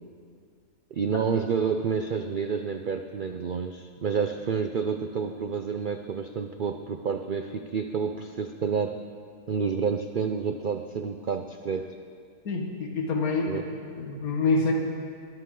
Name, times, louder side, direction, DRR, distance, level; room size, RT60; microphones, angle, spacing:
voice 1, 0.9-9.0 9.5-11.9 13.5-13.7, right 6 dB, 80° right, 7 dB, 0.4 m, -29 dB
voice 2, 12.5-13.6 13.9-14.7, left 3 dB, 70° left, 2 dB, 1.9 m, -26 dB
22.0 x 13.5 x 3.8 m, 2.2 s
omnidirectional pair, 1.6 m